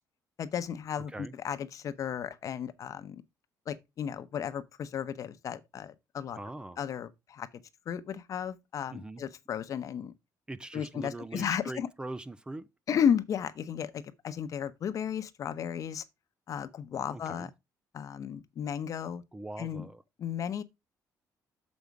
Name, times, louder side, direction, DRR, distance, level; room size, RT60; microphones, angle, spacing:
voice 1, 0.4-3.2 3.7-6.4 6.8-7.5 7.9-10.1 10.7-11.9 12.9-16.0 16.5-17.5 17.9-19.2 19.6-19.9 20.2-20.6, left 8 dB, 50° left, 0.9 m, -34 dB
voice 2, 6.3-6.8 8.9-9.2 10.5-12.7 17.1-17.5 19.3-20.0, right 2 dB, 15° right, 0.5 m, -42 dB
7.0 x 5.3 x 4.7 m
cardioid pair, 130°, 7 cm